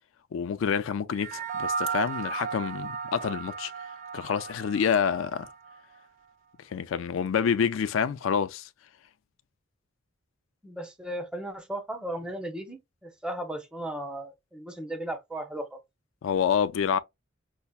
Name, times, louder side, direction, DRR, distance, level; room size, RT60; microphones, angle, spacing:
voice 1, 0.3-3.7 4.1-5.5 6.7-8.7 16.2-17.0, left 7 dB, 80° left, 0.4 m, -27 dB
sound 1, 1.1-5.8, right 6 dB, 40° right, 0.3 m, -35 dB
voice 2, 10.6-15.8, right 1 dB, 5° right, 0.7 m, -36 dB
5.4 x 2.0 x 2.3 m
head